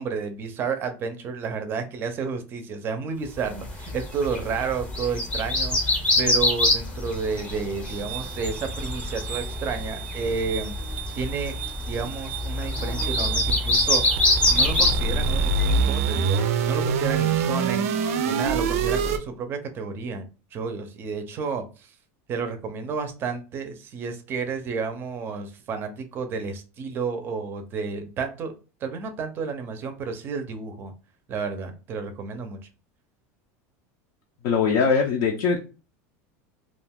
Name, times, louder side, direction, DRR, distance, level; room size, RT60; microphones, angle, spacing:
voice 1, 0.0-10.7 11.2-11.6 11.9-17.9 18.2-22.0 22.3-28.5 28.8-30.9 31.3-32.6, right 5 dB, 30° right, 7 dB, 0.5 m, -31 dB
sound 1, 3.5-16.0, left 2 dB, 15° left, 0.7 m, -26 dB
sound 2, 7.9-19.2, right 5 dB, 85° right, 0.4 m, -27 dB
voice 2, 34.4-35.6, left 5 dB, 55° left, 0 dB, 0.5 m, -21 dB
2.4 x 2.3 x 3.4 m, 0.33 s
supercardioid pair, 155°, 8 cm